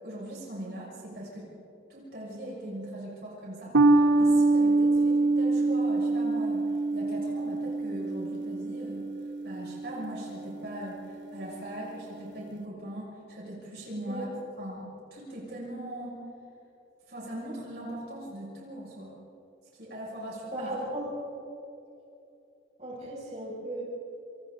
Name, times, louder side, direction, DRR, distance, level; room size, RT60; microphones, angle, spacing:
voice 1, 0.0-1.5 1.9-9.1 9.4-14.3 14.6-14.8 15.1-16.2 17.1-19.1 19.8-20.7, right 1 dB, 60° right, -5 dB, 6.7 m, -40 dB
sound 1, 3.7-10.5, right 2 dB, 80° right, 1.4 m, -25 dB
voice 2, 20.5-21.1 22.8-23.8, right 1 dB, 35° right, -5 dB, 6.7 m, -36 dB
29.0 x 28.0 x 4.0 m, 2.9 s
head